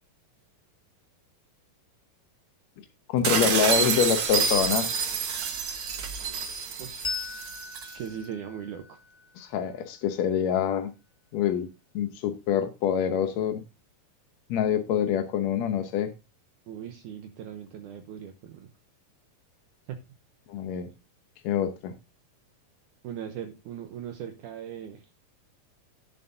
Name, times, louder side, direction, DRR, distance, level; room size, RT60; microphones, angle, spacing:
voice 1, 3.1-5.0 9.4-10.9 11.3-11.7 12.0-13.6 14.5-16.1 20.5-20.9 21.4-21.9, left 9 dB, 70° left, 7 dB, 1.7 m, -26 dB
sound 1, 3.2-7.9, right 6 dB, 55° right, 1.7 m, -28 dB
voice 2, 6.8-7.3 7.9-9.0 16.7-18.7 19.9-20.0 23.0-25.0, right 9 dB, 75° right, 6 dB, 2.2 m, -39 dB
Bell, 7.0-10.1, left 4 dB, 15° left, 0.9 m, -39 dB
16.5 x 7.2 x 2.7 m, 0.27 s
omnidirectional pair, 3.9 m